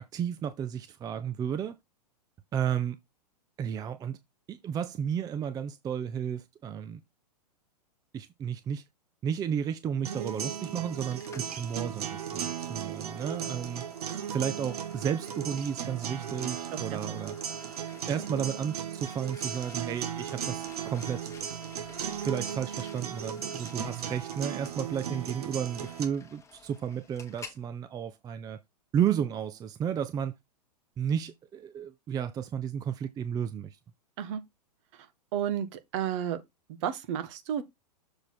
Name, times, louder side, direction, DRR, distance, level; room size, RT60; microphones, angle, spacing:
voice 1, 0.0-1.8 2.5-3.0 3.6-4.2 4.5-7.0 8.1-8.8 9.2-13.8 14.3-17.4 18.1-21.3 22.2-28.6 28.9-30.3 31.0-33.8, right 8 dB, 20° right, 0.5 m, -33 dB
sound 1, 10.0-26.0, right 9 dB, 65° right, 1.4 m, -36 dB
sound 2, 11.0-27.6, left 4 dB, 15° left, 1.5 m, -52 dB
voice 2, 35.3-36.4 36.8-37.6, right 9 dB, 50° right, 1.2 m, -31 dB
6.9 x 4.0 x 4.4 m
hypercardioid pair, 110°, 21 cm